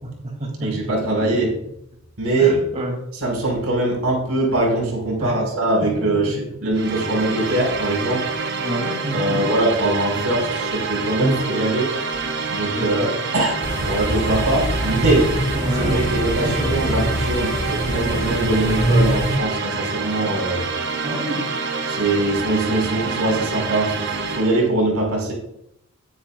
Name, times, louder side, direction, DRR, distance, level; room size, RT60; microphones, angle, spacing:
voice 1, 0.0-0.9 1.3-1.4 2.4-3.1 5.2-5.4 5.8-6.6 7.0-7.1 8.6-9.4 12.7-13.1 15.5-16.1 16.4-17.1 21.0-21.5, right 1 dB, 30° right, 2 dB, 2.5 m, -29 dB
voice 2, 0.6-1.5 2.2-2.5 3.1-8.3 9.1-11.9 12.5-15.3 15.7-20.6 21.9-25.3, right 2 dB, 85° right, -2 dB, 5.0 m, -22 dB
sound 1, 6.7-24.7, right 4 dB, 50° right, 1.0 m, -27 dB
sound 2, 13.6-19.4, equal, 35° left, 4.3 m, -23 dB
18.0 x 9.6 x 2.4 m, 0.81 s
head